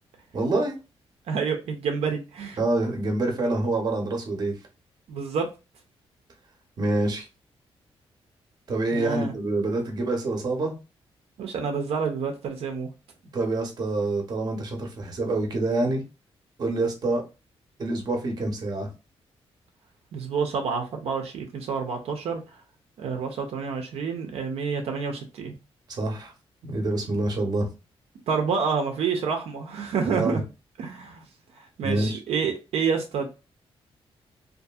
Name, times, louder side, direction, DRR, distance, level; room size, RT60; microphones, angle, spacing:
voice 1, 0.3-0.8 2.6-4.5 6.8-7.2 8.7-10.7 13.3-16.0 16.6-17.2 17.8-18.9 25.9-26.3 26.6-27.7 30.0-30.4 31.8-32.2, right 2 dB, 40° right, 0.7 m, -26 dB
voice 2, 1.3-2.6 5.1-5.5 8.9-9.3 11.4-12.9 20.1-22.4 23.0-25.5 28.3-30.4 30.8-31.2 31.6-33.3, right 5 dB, 80° right, 0.6 m, -28 dB
2.6 x 2.5 x 2.3 m
wide cardioid pair, 160°, 10 cm